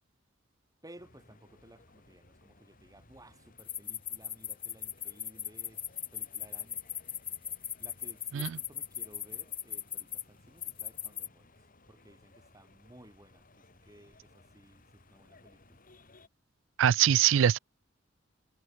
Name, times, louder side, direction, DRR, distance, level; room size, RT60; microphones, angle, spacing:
voice 1, 0.8-5.8 6.1-6.9 7.8-11.5 11.9-15.8, right 1 dB, 20° right, 5.8 m, -57 dB
sound 1, 1.0-16.3, left 2 dB, 45° left, 3.9 m, -61 dB
sound 2, 3.6-10.2 10.6-11.3, left 9 dB, 30° left, 1.9 m, -38 dB
voice 2, 16.8-17.6, right 10 dB, 70° right, 0.4 m, -23 dB
head